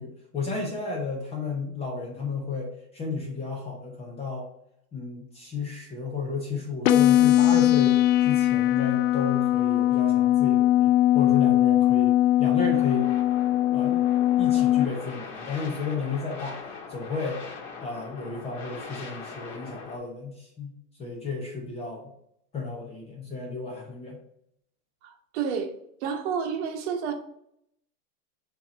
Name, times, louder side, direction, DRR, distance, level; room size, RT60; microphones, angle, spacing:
voice 1, 0.0-4.5 4.9-13.1 13.7-14.1 14.4-16.6 16.9-17.4 17.8-20.7 21.0-22.1 22.5-24.2, left 4 dB, 15° left, 0.6 m, -33 dB
sound 1, 6.8-14.9, left 13 dB, 65° left, 0.6 m, -20 dB
sound 2, 12.7-20.0, left 4 dB, 40° left, 1.8 m, -41 dB
voice 2, 25.0-25.7 26.0-27.1, right 6 dB, 45° right, 1.0 m, -30 dB
6.8 x 2.9 x 5.0 m
supercardioid pair, 145°, 46 cm